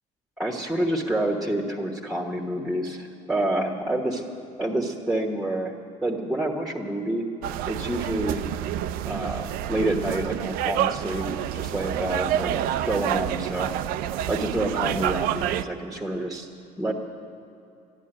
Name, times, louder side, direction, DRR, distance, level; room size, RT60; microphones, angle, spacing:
voice 1, 0.4-4.2 4.6-7.2 7.7-8.5 9.0-13.8 14.3-16.5 16.8-16.9, right 1 dB, ahead, 1 dB, 1.3 m, -28 dB
sound 1, 7.4-15.6, right 11 dB, 90° right, 0.5 m, -28 dB
14.0 x 11.5 x 8.9 m, 2.8 s
cardioid pair, 125°, 15 cm